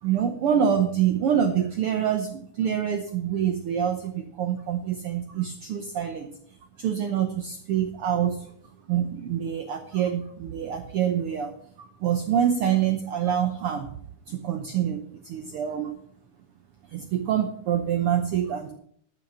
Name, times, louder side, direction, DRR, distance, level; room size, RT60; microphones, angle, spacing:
voice 1, 0.0-6.3 6.8-8.5 8.9-13.9 14.3-15.9 16.9-18.7, right 9 dB, 90° right, 6 dB, 1.2 m, -26 dB
12.0 x 6.1 x 7.3 m, 0.64 s
omnidirectional pair, 3.7 m